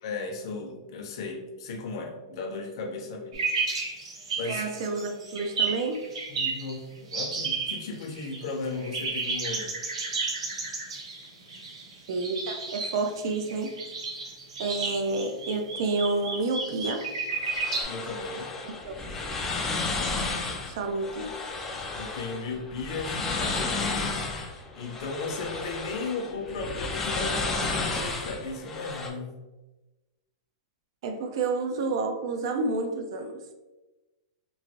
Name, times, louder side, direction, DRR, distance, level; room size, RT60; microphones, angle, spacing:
voice 1, 0.0-3.4 4.4-4.6 6.3-9.8 17.8-18.5 21.9-24.1 24.7-29.4, left 3 dB, 55° left, 2 dB, 0.6 m, -36 dB
sound 1, 3.3-6.8 7.1-8.5 8.8-17.8, right 4 dB, 90° right, 0.8 m, -32 dB
voice 2, 4.5-6.1 12.1-13.7 14.6-17.1 18.9-19.0 20.7-21.3 31.0-33.4, right 3 dB, 55° right, 5 dB, 0.4 m, -29 dB
sound 2, 17.3-29.1, left 3 dB, 10° left, 0.3 m, -32 dB
3.1 x 2.5 x 2.8 m, 1.1 s
supercardioid pair, 165°, 3 cm